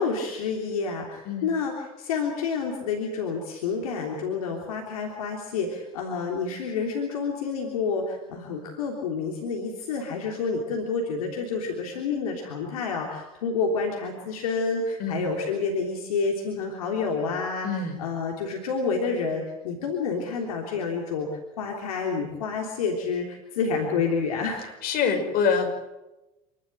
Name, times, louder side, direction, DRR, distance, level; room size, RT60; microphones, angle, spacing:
voice 1, 0.0-21.3 21.6-24.6, left 4 dB, 80° left, 1 dB, 3.4 m, -29 dB
voice 2, 17.6-18.0 24.8-25.7, left 6 dB, 55° left, 4 dB, 5.6 m, -25 dB
28.0 x 12.5 x 9.0 m, 0.98 s
hypercardioid pair, 80°, 18 cm